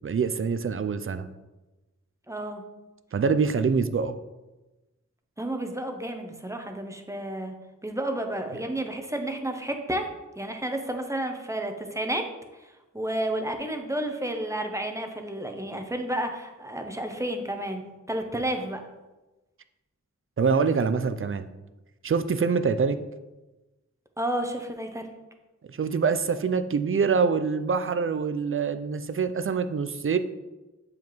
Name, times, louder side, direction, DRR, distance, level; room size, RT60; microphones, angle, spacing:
voice 1, 0.0-1.3 3.1-4.2 20.4-21.5 22.0-23.0 25.7-30.2, right 5 dB, 45° right, 11 dB, 0.4 m, -25 dB
voice 2, 2.3-2.6 5.4-7.5 7.8-10.1 10.4-12.2 12.9-17.8 18.1-18.8 24.2-25.1, right 1 dB, 10° right, 4 dB, 0.7 m, -31 dB
7.2 x 4.8 x 3.1 m, 1.1 s
wide cardioid pair, 70°, 30 cm